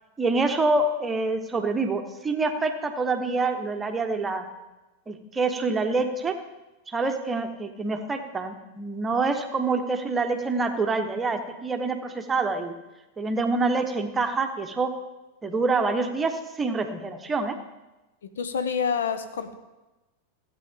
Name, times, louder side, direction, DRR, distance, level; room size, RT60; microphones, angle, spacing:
voice 1, 0.2-4.4 5.1-6.3 6.9-12.7 13.2-14.9 15.4-17.6, right 3 dB, 15° right, 6 dB, 1.0 m, -26 dB
voice 2, 18.2-19.5, left 6 dB, 65° left, 9 dB, 0.8 m, -28 dB
16.0 x 8.5 x 3.7 m, 1.1 s
figure-of-eight pair, 90°, 0 cm